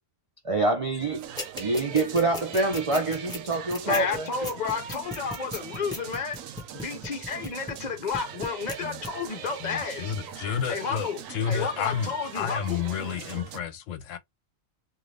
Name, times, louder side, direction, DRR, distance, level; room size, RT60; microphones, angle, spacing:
voice 1, 0.4-1.2 1.6-4.3, right 2 dB, 60° right, 0.3 m, -26 dB
sound 1, 1.0-13.6, right 9 dB, 80° right, 1.0 m, -42 dB
sound 2, 1.4-7.9 8.1-8.8 9.0-9.1, left 1 dB, 5° left, 0.9 m, -35 dB
voice 2, 3.8-6.4 6.7-10.1 10.7-11.2 11.5-12.8, left 5 dB, 40° left, 0.7 m, -31 dB
voice 3, 9.6-14.2, left 7 dB, 75° left, 0.9 m, -31 dB
2.5 x 2.5 x 3.2 m
omnidirectional pair, 1.4 m